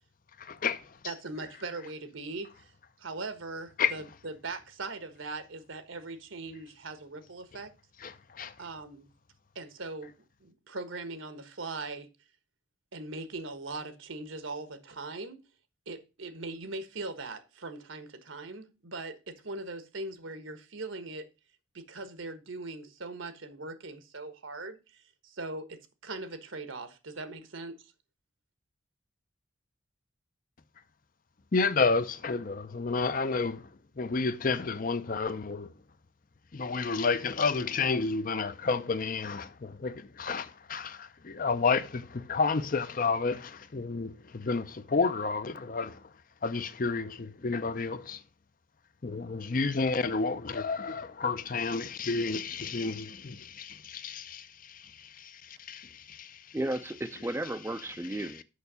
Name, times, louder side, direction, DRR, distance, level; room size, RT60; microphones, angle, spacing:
voice 1, 0.4-1.0 3.8-3.9 8.0-8.5 31.5-33.7 34.0-35.7 36.5-46.1 46.4-48.2 49.0-56.6 58.1-58.4, left 4 dB, 45° left, 0.6 m, -31 dB
voice 2, 1.0-2.7 3.0-7.7 8.6-9.1 9.5-10.1 10.4-12.1 12.9-15.4 15.9-21.3 21.7-27.8, right 3 dB, 75° right, 1.3 m, -40 dB
voice 3, 56.5-58.4, right 1 dB, 10° right, 0.4 m, -34 dB
6.6 x 5.9 x 6.8 m
head